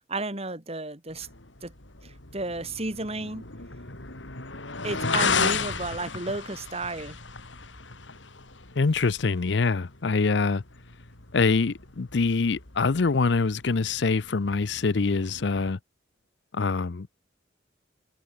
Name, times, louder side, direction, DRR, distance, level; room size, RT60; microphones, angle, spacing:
voice 1, 0.1-1.3 1.6-1.7 2.0-3.5 4.8-7.2, right 2 dB, 35° right, 4.9 m, -33 dB
sound 1, 1.1-15.7, left 5 dB, 80° left, 3.9 m, -35 dB
voice 2, 8.8-10.6 11.3-15.8 16.5-17.1, left 4 dB, 65° left, 0.6 m, -24 dB
head